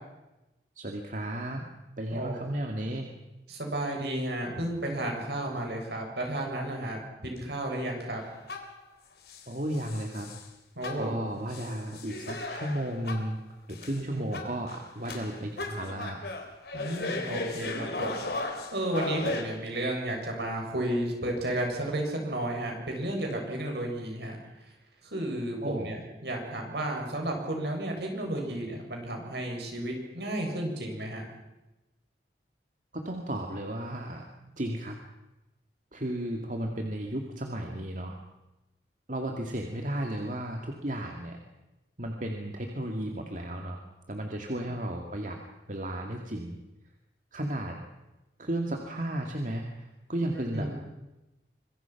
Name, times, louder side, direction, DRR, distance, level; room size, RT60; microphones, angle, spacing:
voice 1, 0.8-3.0 9.5-10.3 10.9-13.4 13.7-16.2 25.6-25.9 32.9-34.3 34.6-35.0 35.9-38.2 39.1-41.4 42.0-43.8 44.1-45.4 45.7-46.6 47.3-47.8 48.4-50.7, right 1 dB, 45° right, 2 dB, 2.2 m, -34 dB
voice 2, 3.5-8.2 10.8-11.1 14.0-14.4 16.7-18.1 18.4-24.4 25.1-31.2 44.5-44.7 50.5-50.7, right 1 dB, 70° right, 1 dB, 7.3 m, -33 dB
sound 1, 8.2-8.8 9.3-10.5 10.8-13.4 13.7-14.0 14.3-19.4, left 2 dB, 65° left, 3.7 m, -36 dB
26.0 x 23.5 x 6.0 m, 1.0 s
head